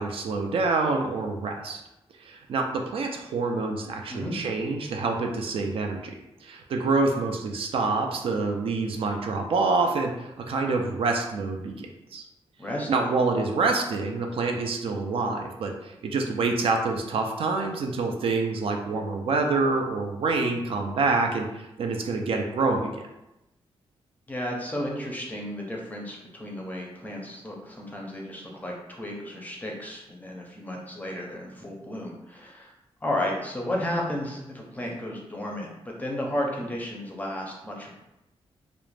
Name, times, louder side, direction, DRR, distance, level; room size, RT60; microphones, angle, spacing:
voice 1, 0.0-1.8 2.2-6.2 6.4-12.2 12.9-23.0, right 3 dB, 60° right, 2 dB, 0.4 m, -27 dB
voice 2, 12.6-12.9 24.3-32.7 33.0-35.7 36.0-37.9, left 1 dB, 15° left, -1 dB, 0.5 m, -33 dB
2.4 x 2.0 x 3.2 m, 0.91 s
wide cardioid pair, 125°, 10 cm